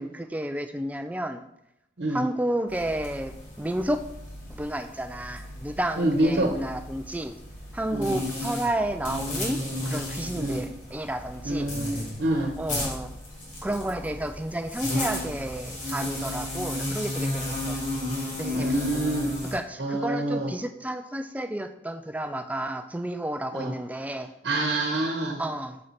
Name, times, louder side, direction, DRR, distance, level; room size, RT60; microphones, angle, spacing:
voice 1, 0.0-1.4 2.1-4.0 4.5-7.3 7.7-11.7 12.6-13.2 13.6-17.8 18.3-18.7 19.5-24.3 25.4-25.8, right 1 dB, 10° right, 7 dB, 0.3 m, -31 dB
sound 1, 2.7-19.6, left 1 dB, 40° left, 1.8 m, -34 dB
voice 2, 6.0-6.5 7.9-8.2 10.3-10.6 11.4-11.9 12.2-12.5 18.5-19.3 19.8-20.5 23.5-23.7 24.4-25.4, right 1 dB, 70° right, 0 dB, 1.0 m, -26 dB
6.4 x 4.5 x 4.2 m, 0.82 s
head